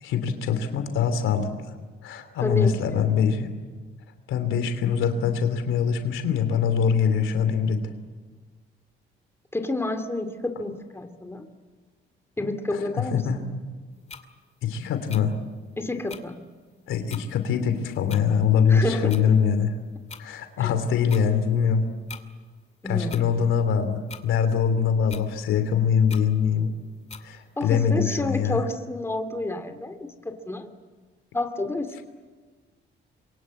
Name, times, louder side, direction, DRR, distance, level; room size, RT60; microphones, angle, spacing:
voice 1, 0.0-1.5 2.0-3.5 4.3-7.8 13.1-13.4 14.6-15.3 16.9-19.7 20.2-21.8 22.9-26.7 27.2-28.6, left 7 dB, 85° left, 8 dB, 3.0 m, -23 dB
voice 2, 2.4-3.1 9.5-11.5 12.4-13.6 15.8-16.4 18.7-19.2 20.6-20.7 22.8-23.4 27.6-30.7 31.3-32.0, left 2 dB, 10° left, 7 dB, 2.5 m, -30 dB
sound 1, 14.1-14.2 15.1-15.2 16.1-16.2 17.1-17.2 18.1-18.2 19.1-19.3 20.1-20.2 21.1-21.2 22.1-22.2 23.1-23.3 24.1-24.2 25.1-25.3 26.1-26.3 27.1-27.2, left 5 dB, 35° left, 2.4 m, -41 dB
27.0 x 23.5 x 8.5 m, 1.4 s
cardioid pair, 90°, 20 cm